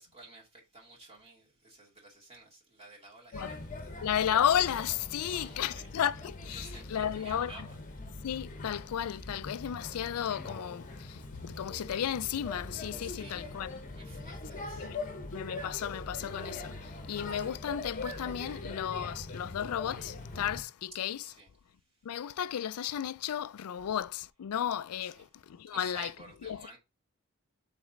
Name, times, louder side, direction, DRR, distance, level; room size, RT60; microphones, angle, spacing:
voice 1, 0.0-3.9 5.1-5.9 6.5-7.8 13.0-13.5 13.9-14.9 21.2-21.5 25.0-25.3 25.7-26.8, right 2 dB, 30° right, 2.4 m, -52 dB
Male speech man speaking / Child speech kid speaking / Chatter, 3.3-20.6, left 2 dB, 35° left, 1.0 m, -42 dB
voice 2, 4.0-7.5 8.2-13.7 14.8-15.0 15.3-21.2 22.0-26.1 26.4-26.8, left 9 dB, 80° left, 0.4 m, -33 dB
6.3 x 4.1 x 3.8 m
head